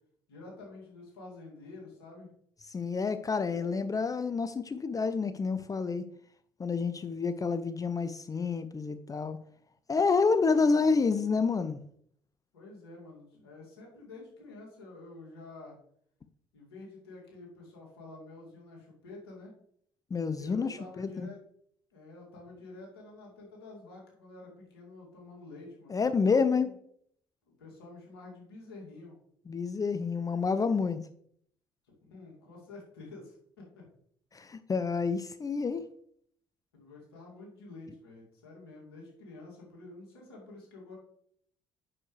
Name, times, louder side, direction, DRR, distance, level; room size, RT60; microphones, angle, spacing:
voice 1, 0.3-2.3 3.3-3.6 12.5-15.8 16.5-19.5 20.3-21.4 21.9-26.7 27.5-29.2 32.0-33.4 33.8-33.9 36.7-41.0, left 2 dB, 85° left, -2 dB, 2.4 m, -49 dB
voice 2, 2.7-6.0 6.6-9.4 9.9-11.8 20.1-21.3 25.9-26.7 29.5-31.0 34.3-35.8, left 4 dB, 30° left, 11 dB, 0.6 m, -28 dB
8.7 x 6.5 x 3.2 m, 0.67 s
hypercardioid pair, 55°, 13 cm